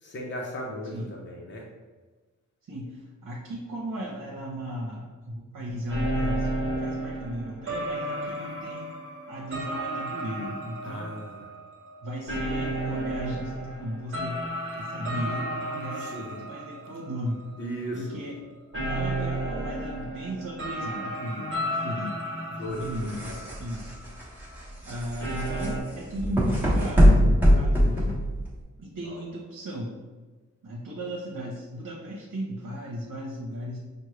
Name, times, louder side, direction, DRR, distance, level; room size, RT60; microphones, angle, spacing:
voice 1, 0.0-1.7 10.8-11.5 15.9-16.5 17.6-18.3 22.5-23.9 29.0-29.4, equal, 35° left, -2 dB, 0.7 m, -38 dB
voice 2, 2.6-6.5 6.8-8.9 9.3-11.1 12.0-14.4 14.8-17.5 17.9-18.4 18.8-22.2 22.5-23.9 24.8-28.2 28.8-29.9 30.6-33.8, equal, 70° right, -4 dB, 0.9 m, -36 dB
sound 1, 5.9-17.7 18.0-18.2 18.7-24.2 24.5-24.6 25.2-25.8, right 1 dB, 40° right, 1.2 m, -33 dB
sound 2, 22.7-28.6, equal, 5° right, 1.1 m, -22 dB
6.2 x 2.2 x 3.2 m, 1.3 s
wide cardioid pair, 115°, 31 cm